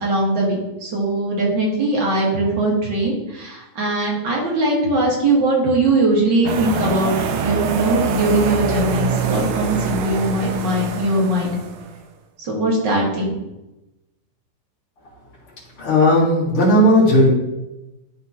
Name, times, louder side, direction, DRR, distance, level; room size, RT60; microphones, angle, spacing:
voice 1, 0.0-7.1 7.4-11.6 12.4-13.3, right 2 dB, 60° right, -3 dB, 2.2 m, -20 dB
sound 1, 6.5-12.0, right 6 dB, 90° right, 1.5 m, -24 dB
voice 2, 15.8-17.3, left 1 dB, 75° left, -5 dB, 2.8 m, -14 dB
11.5 x 3.8 x 2.8 m, 0.97 s
omnidirectional pair, 2.3 m